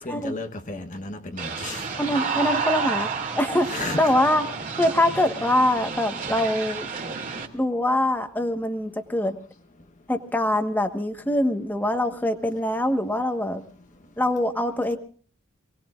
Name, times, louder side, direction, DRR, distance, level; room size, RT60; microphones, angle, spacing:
voice 1, 0.0-1.9 3.7-4.0, left 2 dB, 40° left, 1.1 m, -33 dB
sound 1, 1.4-7.5, right 5 dB, 40° right, 2.7 m, -30 dB
voice 2, 2.0-3.1 3.4-4.4 4.8-6.9 7.5-9.4 10.1-13.6 14.2-15.0, left 1 dB, 10° left, 1.3 m, -24 dB
27.5 x 19.5 x 2.5 m
head